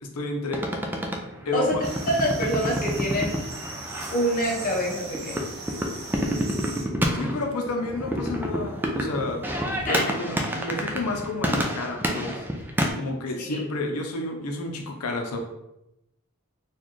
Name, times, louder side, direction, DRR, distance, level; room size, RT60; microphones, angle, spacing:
voice 1, 0.0-0.7 1.5-1.7 7.1-12.4 12.9-15.4, left 2 dB, 90° left, 3 dB, 0.6 m, -31 dB
sound 1, 0.5-12.9, equal, 10° right, 0.3 m, -29 dB
sound 2, 1.8-6.8, right 3 dB, 50° right, 0.7 m, -39 dB
voice 2, 2.1-3.3 4.1-5.5 9.9-10.0 13.5-13.6, equal, 40° left, -2 dB, 0.9 m, -25 dB
4.0 x 2.3 x 3.1 m, 0.87 s
head